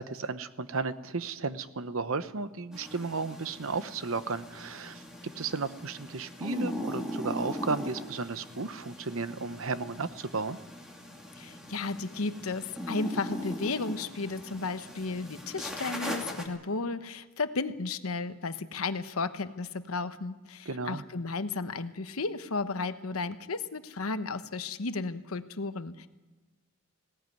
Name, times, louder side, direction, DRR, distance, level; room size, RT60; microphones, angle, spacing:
voice 1, 0.0-5.0 5.4-10.6 20.7-21.0, right 4 dB, 70° right, 13 dB, 0.9 m, -34 dB
sound 1, 2.7-16.5, equal, 5° right, 2.8 m, -40 dB
voice 2, 11.4-26.1, left 3 dB, 85° left, 11 dB, 1.0 m, -34 dB
19.5 x 17.5 x 9.3 m, 1.2 s
head